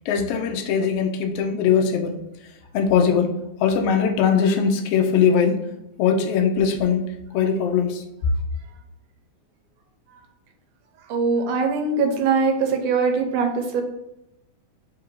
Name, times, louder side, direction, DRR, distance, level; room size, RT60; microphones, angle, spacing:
voice 1, 0.1-2.2 2.7-3.3 3.6-5.6 6.0-7.1 7.3-8.0, left 6 dB, 90° left, 3 dB, 1.3 m, -20 dB
voice 2, 11.0-13.8, right 4 dB, 80° right, 3 dB, 2.1 m, -22 dB
4.7 x 2.5 x 4.5 m, 0.87 s
omnidirectional pair, 3.5 m